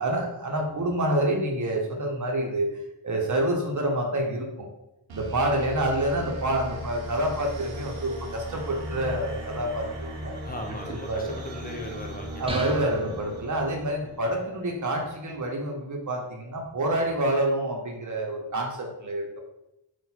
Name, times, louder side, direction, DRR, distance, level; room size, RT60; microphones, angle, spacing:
voice 1, 0.0-2.7 3.0-4.7 5.1-10.4 10.9-11.3 12.4-19.3, right 1 dB, 40° right, 1 dB, 1.0 m, -27 dB
sound 1, 5.1-14.5, equal, 80° right, 0.9 m, -38 dB
voice 2, 10.4-12.5, left 1 dB, 20° left, 0 dB, 0.7 m, -37 dB
sound 2, 12.5-14.1, right 2 dB, 10° right, 0.6 m, -36 dB
3.9 x 2.5 x 4.4 m, 0.88 s
cardioid pair, 90°, 46 cm